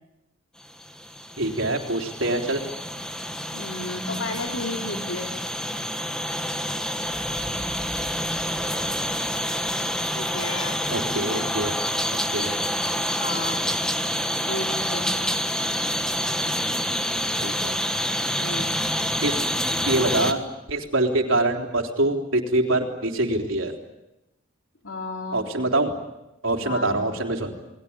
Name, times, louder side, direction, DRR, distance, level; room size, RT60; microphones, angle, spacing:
sound 1, 0.7-20.3, equal, 5° left, 1.5 m, -27 dB
voice 1, 1.4-2.6 10.9-11.8 12.3-12.6 17.4-17.8 19.2-19.4 19.9-20.4 20.7-23.7 25.3-26.0 26.4-27.6, right 2 dB, 85° right, 3 dB, 3.7 m, -24 dB
voice 2, 3.5-5.3 10.1-10.9 11.2-11.6 13.2-13.7 14.5-15.1 18.4-18.8 24.8-25.5 26.6-27.1, left 2 dB, 85° left, 2 dB, 3.3 m, -33 dB
sound 2, 7.0-11.6, equal, 45° left, 7.4 m, -45 dB
29.5 x 20.5 x 8.8 m, 0.94 s
head